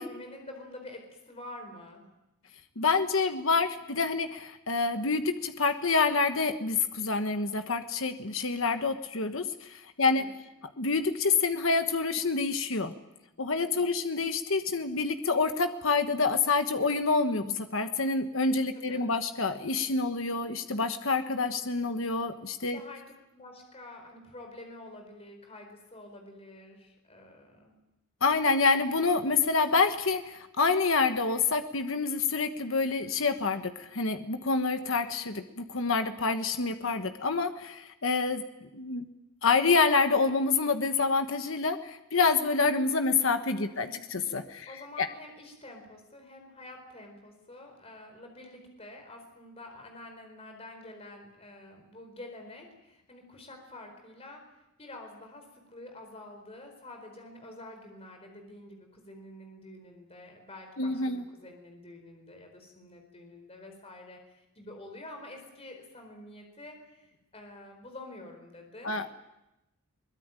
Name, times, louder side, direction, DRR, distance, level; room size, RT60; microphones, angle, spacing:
voice 1, 0.0-2.0 10.0-10.3 13.6-13.8 18.7-19.1 22.7-23.0 23.3-27.7 43.6-44.0 44.7-54.4 54.8-69.1, left 1 dB, 30° left, 4 dB, 4.4 m, -48 dB
voice 2, 2.8-10.2 10.8-12.9 13.4-22.8 28.2-38.4 38.7-39.1 39.4-44.7 45.0-45.1 60.8-61.2 68.8-69.1, left 4 dB, 65° left, 7 dB, 1.3 m, -27 dB
23.0 x 20.5 x 8.9 m, 0.93 s
head